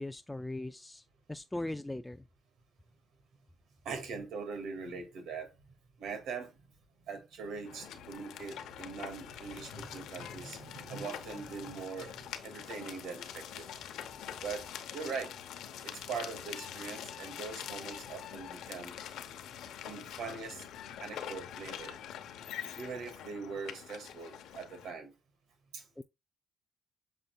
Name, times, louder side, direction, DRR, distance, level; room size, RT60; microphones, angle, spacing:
voice 1, 0.0-2.2 26.0-26.1, left 1 dB, 10° left, 0.3 m, -39 dB
voice 2, 3.8-5.6 6.0-6.5 7.1-13.7 14.4-15.4 15.8-19.0 19.8-20.6 21.0-22.0 22.8-25.1 25.7-25.8, right 5 dB, 80° right, 2.2 m, -42 dB
sound 1, 7.6-24.9, left 9 dB, 85° left, 0.9 m, -45 dB
7.6 x 5.7 x 2.3 m
cardioid pair, 90°, 0 cm